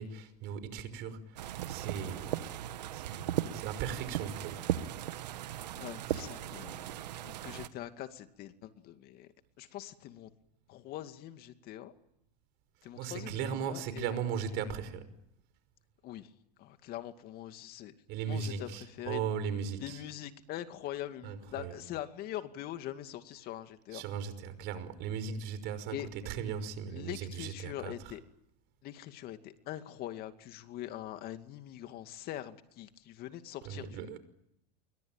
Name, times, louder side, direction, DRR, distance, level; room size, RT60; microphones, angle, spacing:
voice 1, 0.0-2.5 2.9-4.6 13.0-15.1 18.1-20.0 21.2-21.8 23.9-28.1 33.7-34.2, right 7 dB, 55° right, 5.5 m, -38 dB
sound 1, 1.4-7.7, right 12 dB, 90° right, 1.7 m, -37 dB
voice 2, 5.7-7.0 7.2-10.3 10.7-11.9 12.8-14.2 16.0-16.3 16.6-17.9 18.3-19.2 19.8-24.0 25.9-26.1 26.9-28.2 28.8-34.2, left 13 dB, 50° left, 2.4 m, -43 dB
28.5 x 23.0 x 9.0 m
supercardioid pair, 115°, 21 cm